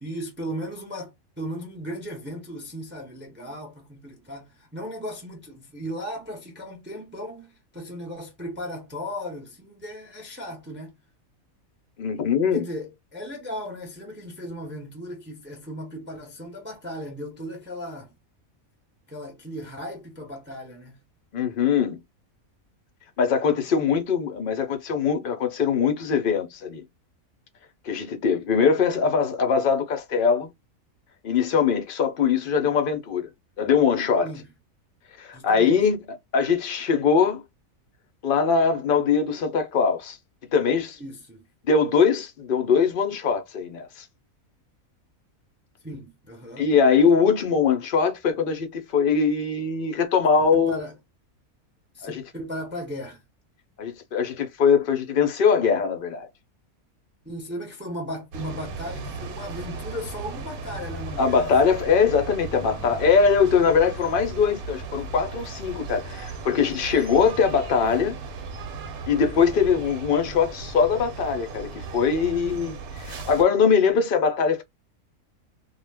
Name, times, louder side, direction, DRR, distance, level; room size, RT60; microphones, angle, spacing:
voice 1, 0.0-10.9 12.5-18.2 19.1-21.1 34.2-34.5 35.3-35.8 40.7-41.4 45.8-46.8 50.4-50.9 51.9-53.2 57.2-61.7, equal, 15° right, 0.4 m, -36 dB
voice 2, 12.0-12.6 21.3-22.0 23.2-26.8 27.8-30.5 31.2-33.3 33.6-34.3 35.2-36.0 36.3-37.4 38.2-40.2 40.5-41.0 41.6-44.0 46.6-50.8 52.0-52.2 53.8-56.3 61.2-68.2 69.1-74.6, left 6 dB, 55° left, 0.6 m, -22 dB
sound 1, 58.3-73.4, right 4 dB, 80° right, 1.1 m, -36 dB
2.4 x 2.2 x 3.3 m
omnidirectional pair, 1.5 m